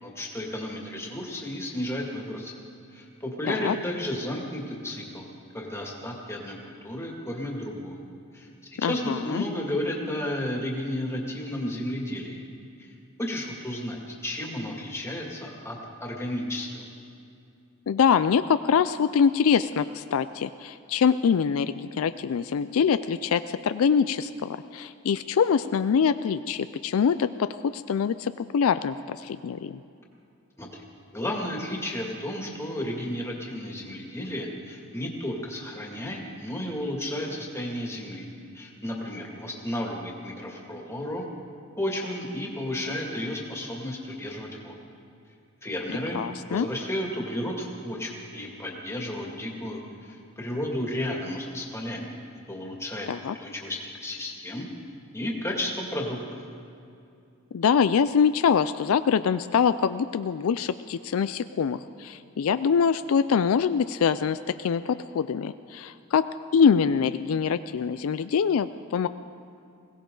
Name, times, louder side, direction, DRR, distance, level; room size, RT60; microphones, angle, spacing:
voice 1, 0.0-2.5 2.9-8.0 8.3-12.4 12.8-12.9 13.2-16.8 30.6-30.8 31.1-38.3 38.5-41.2 41.8-44.8 45.6-52.1 52.5-53.1 53.4-54.7 55.1-56.4, left 1 dB, 10° left, -1 dB, 2.2 m, -33 dB
voice 2, 3.4-3.8 8.8-9.4 17.9-29.8 46.1-46.7 53.1-53.3 57.5-69.1, left 6 dB, 70° left, 12 dB, 0.4 m, -24 dB
21.5 x 17.5 x 3.9 m, 2.5 s
head